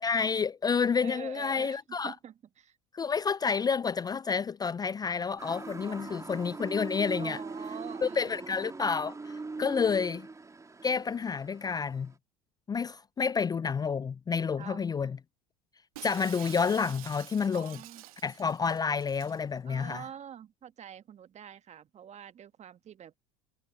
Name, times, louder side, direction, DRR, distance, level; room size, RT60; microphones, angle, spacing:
voice 1, 0.0-2.1 2.9-7.4 8.0-10.3 10.8-12.1 12.7-15.2 16.0-17.8 18.2-20.0, left 5 dB, 20° left, 0.5 m, -29 dB
voice 2, 1.0-2.8 5.8-6.3 7.2-8.6 9.6-10.0 14.6-14.9 17.5-18.0 19.6-23.1, right 9 dB, 40° right, 1.6 m, -46 dB
Motor vehicle (road) / Siren, 5.4-12.1, right 3 dB, 15° right, 3.1 m, -41 dB
Shatter, 15.9-19.4, right 17 dB, 75° right, 1.5 m, -48 dB
hypercardioid pair, 70°, 18 cm